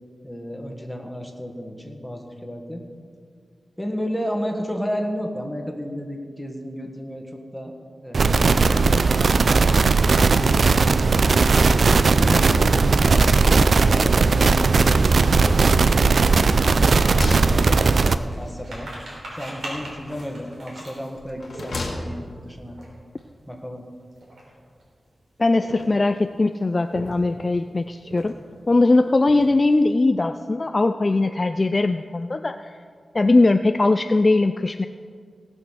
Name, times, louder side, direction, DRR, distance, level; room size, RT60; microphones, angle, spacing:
voice 1, 0.2-2.8 3.8-7.7 8.0-9.5 10.1-10.8 12.1-16.4 17.1-18.9 19.3-22.8 23.5-23.8, equal, ahead, 2 dB, 1.7 m, -33 dB
sound 1, 8.1-18.2, right 4 dB, 60° right, 0.4 m, -17 dB
sound 2, 15.3-22.2 22.7-22.9 23.1-23.3 24.0-24.8 25.5-26.2 26.7-27.5 28.0-28.6 28.9-29.7, right 1 dB, 80° right, 3.9 m, -40 dB
sound 3, 16.9-18.4 19.6-20.5 21.2-22.4, left 2 dB, 55° left, 1.7 m, -34 dB
voice 2, 25.4-28.4 28.7-32.7 33.1-34.9, left 2 dB, 35° left, 9 dB, 0.4 m, -20 dB
18.0 x 6.3 x 6.4 m, 2.1 s
wide cardioid pair, 100°, 0 cm